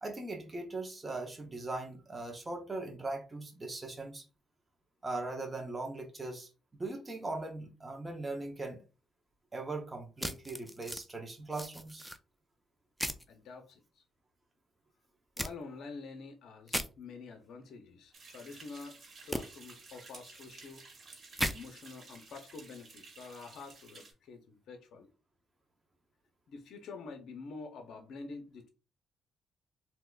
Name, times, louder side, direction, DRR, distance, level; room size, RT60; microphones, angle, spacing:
voice 1, 0.0-4.2 5.0-8.8 9.5-12.1, right 2 dB, 20° right, 0.8 m, -40 dB
sound 1, 10.2-11.0 11.5-12.2 13.0-13.2 15.4-15.5 16.7-16.9 19.3-19.4 21.4-21.5, equal, ahead, 0.4 m, -35 dB
voice 2, 13.3-14.0 15.4-20.9 21.4-25.1 26.5-28.7, left 4 dB, 70° left, 0.6 m, -47 dB
sound 2, 18.1-24.1, right 3 dB, 45° right, 1.4 m, -54 dB
3.5 x 2.8 x 2.3 m
cardioid pair, 90°, 0 cm